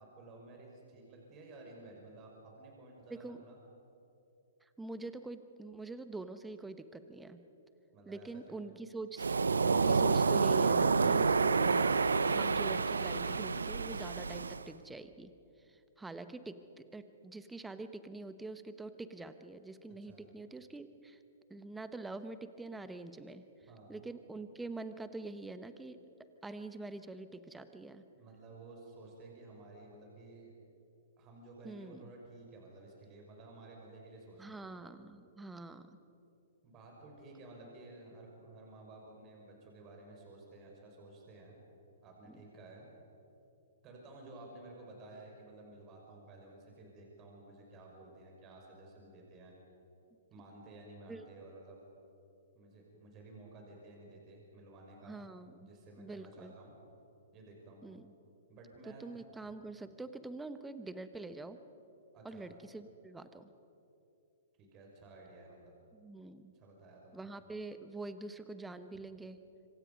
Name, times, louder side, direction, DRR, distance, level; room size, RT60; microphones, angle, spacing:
voice 1, 0.0-3.6 7.9-8.6 20.0-20.2 23.7-23.9 28.2-30.5 31.2-34.6 36.6-41.6 42.0-42.9 43.8-49.5 50.3-51.8 52.5-55.3 55.6-56.7 57.3-57.8 58.5-59.1 62.1-62.5 64.6-65.6 66.5-67.3, right 2 dB, 30° right, 0 dB, 5.5 m, -53 dB
voice 2, 3.1-3.4 4.6-7.4 8.1-9.3 9.6-15.3 15.7-21.2 21.5-23.4 23.9-26.0 26.4-28.0 31.6-32.1 34.4-36.0 42.3-42.4 51.1-51.2 55.0-55.7 56.0-56.5 57.8-58.1 58.8-61.6 62.2-63.5 65.9-66.5 67.1-69.4, right 2 dB, 10° right, 11 dB, 1.2 m, -45 dB
Waves surf, 9.2-14.6, right 4 dB, 80° right, 0.7 m, -29 dB
26.0 x 25.5 x 5.4 m, 2.9 s
figure-of-eight pair, 120°, 0 cm